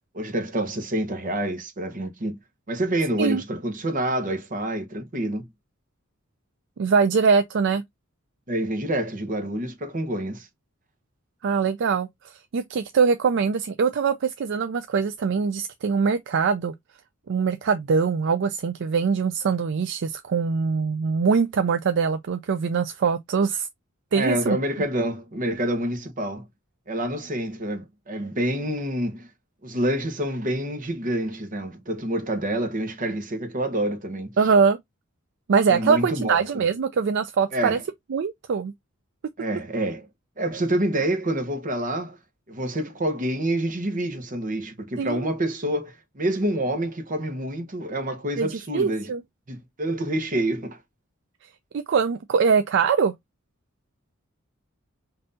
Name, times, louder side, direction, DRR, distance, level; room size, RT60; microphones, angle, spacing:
voice 1, 0.1-2.4 2.7-5.5 8.5-10.5 24.1-26.5 26.9-29.3 29.6-34.3 35.7-36.6 37.5-37.8 39.4-40.1 40.4-42.2 42.5-49.1 49.5-50.8, right 1 dB, 40° right, 0.9 m, -27 dB
voice 2, 6.8-7.8 11.4-16.7 17.3-23.7 24.1-24.6 34.4-34.8 35.5-37.8 38.1-38.7 45.0-45.3 48.4-49.2 51.7-53.1, right 5 dB, 60° right, 0.4 m, -23 dB
5.4 x 2.7 x 2.5 m
head